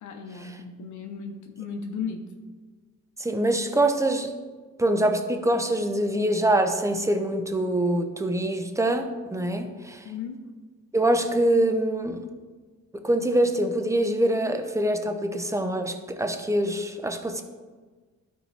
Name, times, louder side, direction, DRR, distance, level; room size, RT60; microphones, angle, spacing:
voice 1, 0.0-2.2 10.0-10.4, left 6 dB, 75° left, 4 dB, 0.9 m, -35 dB
voice 2, 3.2-4.3 4.8-10.0 10.9-12.2 13.0-17.4, right 1 dB, 10° right, 6 dB, 0.7 m, -24 dB
11.5 x 4.6 x 3.3 m, 1.4 s
cardioid pair, 90°, 30 cm